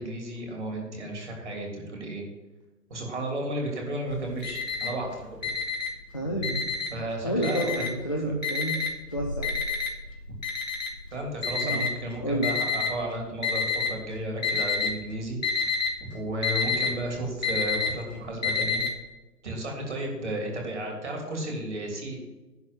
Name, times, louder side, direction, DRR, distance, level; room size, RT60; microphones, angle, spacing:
voice 1, 0.0-2.2 2.9-5.6 6.2-6.4 6.9-7.9 11.1-15.8 16.1-18.8 19.4-22.2, right 1 dB, 45° right, 1 dB, 3.1 m, -33 dB
Alarm, 4.1-5.1 5.4-7.0 7.4-8.1 8.4-12.9 13.4-14.0 14.3-15.0 15.2-18.9, left 5 dB, 55° left, 2.3 m, -28 dB
voice 2, 6.1-6.6 7.2-8.8 9.1-9.5 11.6-11.9 12.2-12.5, right 1 dB, 20° left, -1 dB, 0.7 m, -29 dB
11.0 x 4.2 x 7.7 m, 1.2 s
figure-of-eight pair, 150°, 48 cm